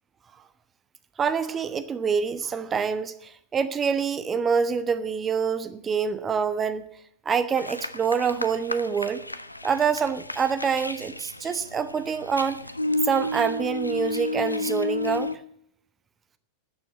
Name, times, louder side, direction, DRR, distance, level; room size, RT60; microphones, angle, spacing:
voice 1, 1.2-6.9 7.2-9.2 9.6-12.6 13.0-15.3, right 6 dB, 20° right, 13 dB, 1.1 m, -26 dB
sound 1, 7.6-15.4, left 2 dB, 85° left, 0.7 m, -32 dB
11.0 x 9.4 x 8.5 m, 0.68 s
figure-of-eight pair, 90°, 0 cm